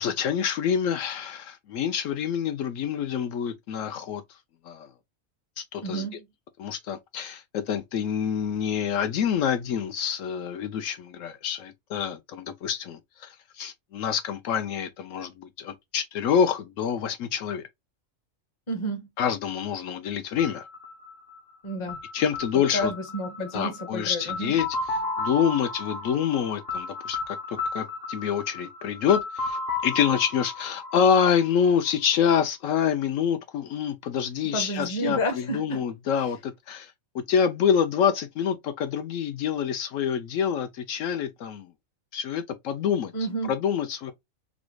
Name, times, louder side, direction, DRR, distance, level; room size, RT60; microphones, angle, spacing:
voice 1, 0.0-4.2 4.7-4.9 5.6-6.1 6.6-17.6 19.2-20.6 22.1-22.9 23.5-24.7 25.2-41.7 42.1-43.1 43.5-44.1, left 8 dB, 75° left, 0.9 m, -27 dB
voice 2, 5.8-6.3 18.7-19.1 21.6-22.0 22.7-24.5 34.4-35.8 43.1-43.5, right 1 dB, 25° left, 0.7 m, -30 dB
sound 1, 20.4-32.2, left 3 dB, 50° left, 1.2 m, -34 dB
4.1 x 2.3 x 3.0 m
omnidirectional pair, 1.4 m